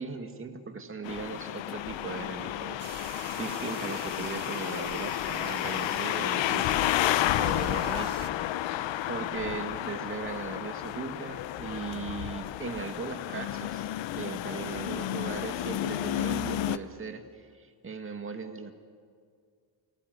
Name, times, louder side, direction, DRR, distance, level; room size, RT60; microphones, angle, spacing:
voice 1, 0.0-6.9 7.4-18.7, right 4 dB, 25° right, 6 dB, 2.0 m, -38 dB
sound 1, 1.0-16.8, left 13 dB, 70° left, 0.9 m, -31 dB
sound 2, 2.8-8.3, right 12 dB, 45° right, 0.7 m, -47 dB
28.5 x 19.5 x 9.5 m, 2.1 s
cardioid pair, 160°, 46 cm